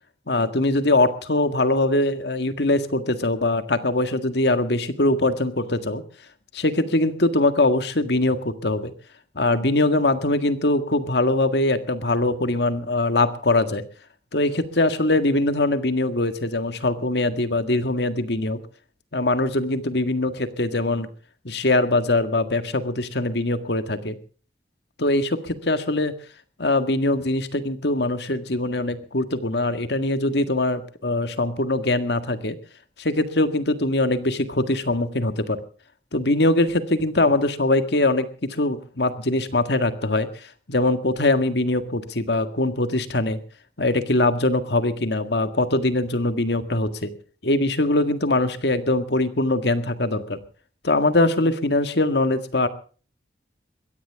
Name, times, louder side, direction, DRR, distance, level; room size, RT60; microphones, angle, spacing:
voice 1, 0.3-6.0 6.5-8.9 9.4-13.8 14.3-18.6 19.1-21.1 21.4-24.2 25.0-26.1 26.6-32.6 33.0-35.6 36.1-43.4 43.8-47.1 47.4-50.4 50.8-52.7, left 2 dB, 65° left, 9 dB, 1.8 m, -22 dB
22.5 x 17.0 x 3.6 m, 0.40 s
head